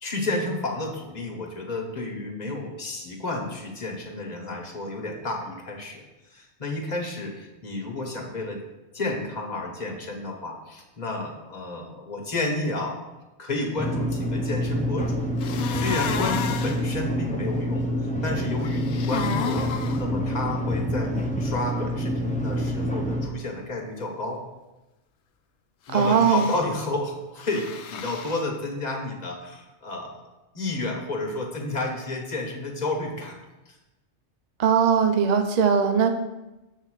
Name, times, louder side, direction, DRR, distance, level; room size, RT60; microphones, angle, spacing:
voice 1, 0.0-6.0 6.3-8.6 8.9-13.0 13.4-15.2 15.7-24.4 25.9-30.2 30.5-33.4 33.7-33.8, left 2 dB, 40° left, 0 dB, 1.3 m, -31 dB
sound 1, 13.8-23.3, equal, 10° left, 0.4 m, -27 dB
sound 2, 15.4-16.8 18.6-20.0 25.9-26.6 27.4-28.4, left 7 dB, 75° left, 0.9 m, -32 dB
voice 2, 25.9-26.5 34.6-36.1, right 6 dB, 50° right, 6 dB, 0.5 m, -20 dB
7.3 x 3.6 x 6.3 m, 1.0 s
omnidirectional pair, 1.2 m